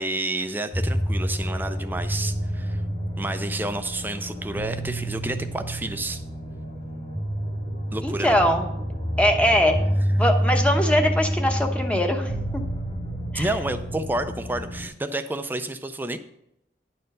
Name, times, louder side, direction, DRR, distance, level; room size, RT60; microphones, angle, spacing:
voice 1, 0.0-2.8 3.2-6.2 7.9-8.3 13.3-16.2, right 2 dB, 10° right, 9 dB, 0.4 m, -30 dB
sound 1, 0.7-14.9, equal, 35° left, 2.2 m, -28 dB
voice 2, 8.0-8.7 9.2-12.6 13.3-13.5, equal, 5° left, 3 dB, 0.9 m, -22 dB
10.5 x 4.4 x 6.6 m, 0.80 s
head